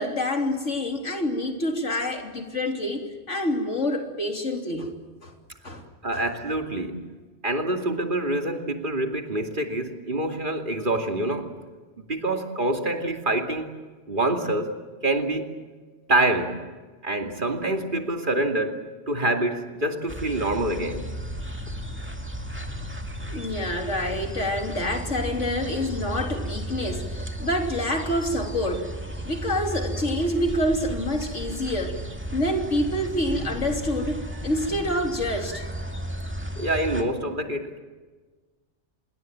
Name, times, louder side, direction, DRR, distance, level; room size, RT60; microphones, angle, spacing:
voice 1, 0.0-4.9 5.2-5.3 5.6-5.9 6.1-6.2 23.3-28.9 29.3-32.0 32.3-35.6, left 1 dB, 75° left, 4 dB, 3.5 m, -27 dB
voice 2, 6.0-7.0 7.4-11.5 12.1-13.7 14.1-14.7 15.0-15.6 16.1-16.6 17.0-18.8 19.1-21.0 36.5-37.8, right 1 dB, 45° right, 5 dB, 2.7 m, -26 dB
sound 1, 20.1-37.0, right 1 dB, 10° right, 2.3 m, -34 dB
26.5 x 22.0 x 7.6 m, 1.3 s
omnidirectional pair, 1.2 m